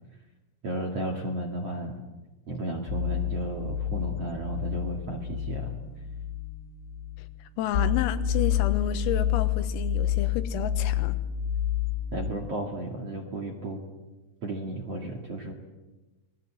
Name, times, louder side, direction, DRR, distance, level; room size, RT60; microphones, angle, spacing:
voice 1, 0.6-1.9 2.5-5.8 12.1-13.8 14.4-15.5, right 2 dB, 45° right, 2.1 m, -33 dB
sound 1, 2.9-12.3, left 9 dB, 65° left, 3.7 m, -29 dB
voice 2, 7.6-11.2, left 10 dB, 85° left, 3.9 m, -31 dB
28.0 x 20.5 x 7.7 m
omnidirectional pair, 5.9 m